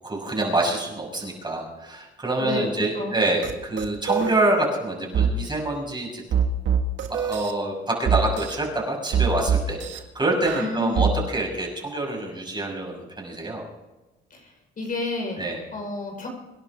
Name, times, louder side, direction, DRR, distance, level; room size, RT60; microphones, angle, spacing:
voice 1, 0.0-6.2 7.1-9.8 10.1-13.6 15.4-15.6, right 2 dB, 20° right, -1 dB, 6.4 m, -26 dB
voice 2, 2.4-3.2 10.6-11.1 14.3-14.5 14.8-15.4 15.7-16.3, left 3 dB, 45° left, 1 dB, 5.2 m, -30 dB
sound 1, 3.4-3.5 3.8-4.3 5.1-5.3 6.3-7.5 8.1-8.6 9.1-10.0 10.5-11.1, right 8 dB, 70° right, 1.9 m, -23 dB
26.0 x 11.0 x 3.8 m, 1.1 s
cardioid pair, 90°, 20 cm